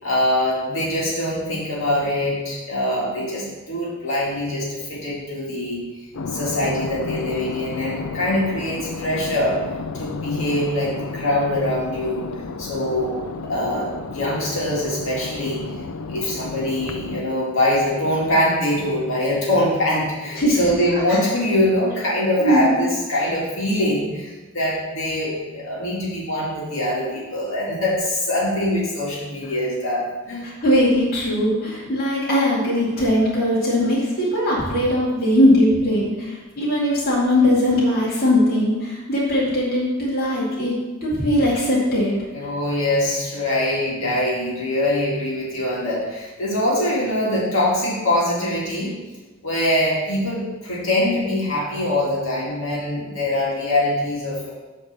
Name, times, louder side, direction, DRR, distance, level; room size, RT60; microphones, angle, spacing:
voice 1, 0.0-5.8 6.3-9.6 9.9-12.3 12.6-13.1 13.4-15.6 16.1-30.4 42.3-48.9 49.4-54.5, left 1 dB, 60° left, -6 dB, 2.3 m, -23 dB
sound 1, 6.1-17.2, left 4 dB, 80° left, 0.5 m, -32 dB
voice 2, 22.4-22.7 30.4-40.8 41.0-42.2, left 1 dB, 45° left, -7 dB, 2.3 m, -20 dB
8.8 x 3.7 x 6.8 m, 1.2 s
head